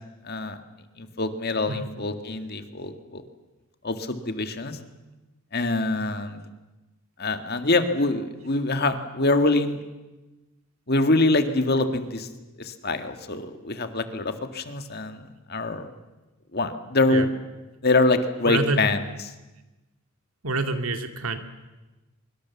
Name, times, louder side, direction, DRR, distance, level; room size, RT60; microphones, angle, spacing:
voice 1, 0.2-0.6 1.0-3.2 3.8-4.8 5.5-6.4 7.2-9.8 10.9-12.3 12.6-15.2 15.5-15.9 16.5-17.3 17.8-19.0, left 2 dB, 50° left, 8 dB, 1.9 m, -24 dB
voice 2, 18.4-18.8 20.4-21.4, right 3 dB, 80° right, 7 dB, 2.3 m, -27 dB
24.0 x 24.0 x 7.2 m, 1.1 s
head